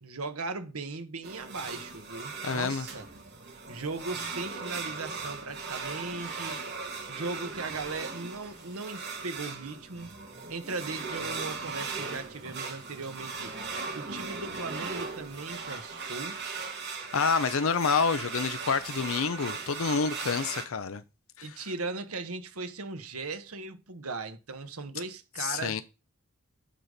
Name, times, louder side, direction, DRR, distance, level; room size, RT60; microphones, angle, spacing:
voice 1, 0.0-3.1 3.7-6.7 7.1-10.1 10.5-13.5 13.9-16.4 21.4-25.8, right 3 dB, 85° right, 1.4 m, -38 dB
sound 1, 1.2-20.7, right 4 dB, 50° right, 2.1 m, -38 dB
voice 2, 2.4-2.9 17.1-21.0 21.4-21.6 25.4-25.8, left 5 dB, 70° left, 0.6 m, -28 dB
10.0 x 4.1 x 5.0 m
head